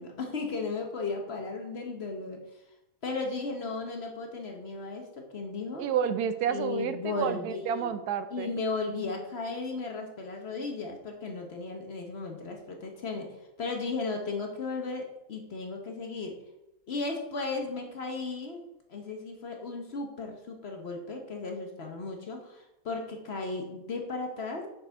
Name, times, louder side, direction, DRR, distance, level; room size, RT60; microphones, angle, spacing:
voice 1, 0.0-2.4 3.0-5.8 6.5-7.9 8.3-16.4 16.9-18.6 18.9-24.7, left 3 dB, 50° left, 3 dB, 1.0 m, -35 dB
voice 2, 5.8-8.5, right 8 dB, 80° right, 11 dB, 1.1 m, -30 dB
6.5 x 5.1 x 4.6 m, 0.91 s
omnidirectional pair, 1.7 m